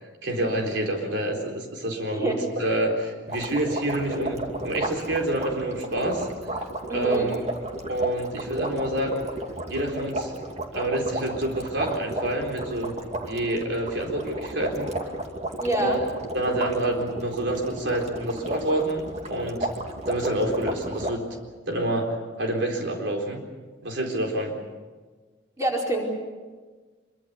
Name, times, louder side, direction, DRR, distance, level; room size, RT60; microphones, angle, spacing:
voice 1, 0.2-6.3 6.9-7.4 7.9-9.2 9.7-10.3 10.7-12.9 13.2-14.9 15.8-16.0 16.3-19.7 20.1-21.2 21.7-23.4 23.8-24.6, right 1 dB, 70° right, 1 dB, 4.1 m, -27 dB
sound 1, 3.3-21.1, right 1 dB, 35° right, 2.5 m, -33 dB
voice 2, 6.9-7.3 15.6-16.0 25.6-26.0, right 1 dB, 15° right, -1 dB, 4.8 m, -26 dB
25.5 x 24.0 x 6.9 m, 1.4 s
head